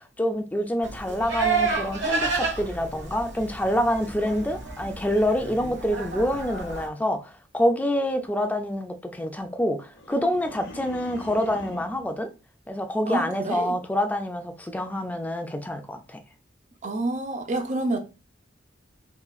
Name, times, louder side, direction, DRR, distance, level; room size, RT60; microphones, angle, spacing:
voice 1, 0.0-12.3 12.7-16.2, equal, 10° left, 0.4 m, -27 dB
Livestock farm animals working animals, 0.8-6.9, right 4 dB, 75° right, 1.1 m, -30 dB
sound 1, 9.9-12.1, left 1 dB, 70° left, 0.8 m, -43 dB
voice 2, 13.1-13.7 16.8-18.0, right 2 dB, 40° right, 0.6 m, -28 dB
3.7 x 3.0 x 2.4 m
head